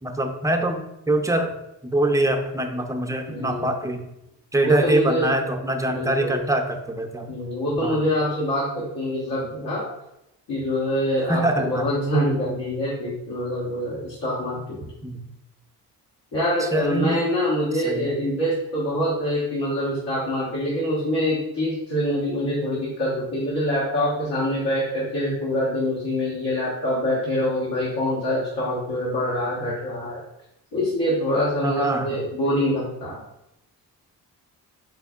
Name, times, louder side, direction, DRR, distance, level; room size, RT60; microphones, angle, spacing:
voice 1, 0.0-1.6 1.8-4.0 4.5-7.3 7.8-8.0 11.3-11.9 15.0-15.2 16.6-17.3 17.7-18.2 31.6-32.2, right 1 dB, 10° right, 3 dB, 0.5 m, -24 dB
voice 2, 3.3-3.7 4.5-5.3 5.9-6.4 7.3-9.8 10.5-14.8 16.3-30.2 30.7-33.2, equal, 75° left, -8 dB, 1.3 m, -25 dB
4.4 x 3.4 x 2.4 m, 0.86 s
supercardioid pair, 55°, 41 cm